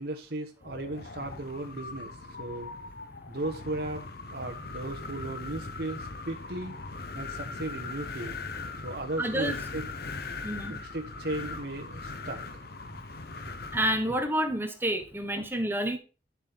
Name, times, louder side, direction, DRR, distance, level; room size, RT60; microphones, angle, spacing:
voice 1, 0.0-2.7 3.3-4.0 4.3-6.7 7.1-8.4 8.8-9.9 10.7-12.4, right 2 dB, 65° right, 3 dB, 1.2 m, -36 dB
Wind, 0.6-14.3, left 3 dB, 60° left, 1.2 m, -40 dB
voice 2, 9.2-9.5 10.4-10.7 13.7-16.0, right 1 dB, 15° right, 6 dB, 1.5 m, -28 dB
10.5 x 7.4 x 3.6 m, 0.33 s
head